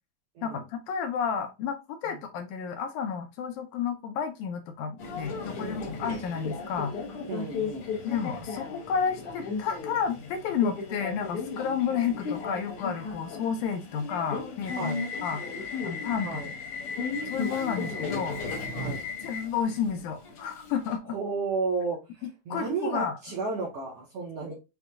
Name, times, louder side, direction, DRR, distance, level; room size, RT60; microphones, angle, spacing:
voice 1, 0.4-6.9 8.1-15.0 15.2-15.4 15.8-16.4 17.3-18.4 19.2-21.2 22.2-23.1, left 7 dB, 80° left, 1.8 m, -31 dB
Subway metro underground, 5.0-21.0, left 4 dB, 60° left, 1.5 m, -35 dB
voice 2, 5.6-5.9 7.3-7.9 14.8-15.1 16.2-16.5 18.7-19.0 21.1-24.5, right 4 dB, 70° right, 1.5 m, -33 dB
5.8 x 2.1 x 3.4 m
omnidirectional pair, 3.8 m